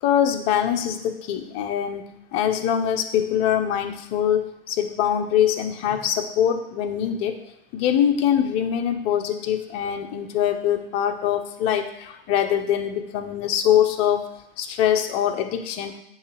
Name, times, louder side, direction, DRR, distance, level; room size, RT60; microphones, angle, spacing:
voice 1, 0.0-7.4 7.7-14.2 14.6-16.0, left 9 dB, 20° left, 5 dB, 0.4 m, -23 dB
8.3 x 3.0 x 4.8 m, 0.84 s
hypercardioid pair, 150°, 30 cm